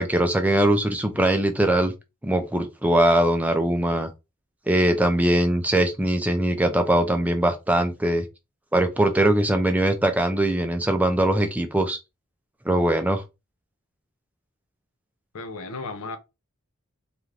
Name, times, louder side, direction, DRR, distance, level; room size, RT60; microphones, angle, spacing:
voice 1, 0.0-1.9 2.2-4.1 4.7-8.2 8.7-12.0 12.7-13.2, right 1 dB, 5° right, 0.4 m, -21 dB
voice 2, 15.3-16.2, left 3 dB, 85° left, 0.6 m, -34 dB
2.6 x 2.4 x 3.1 m
head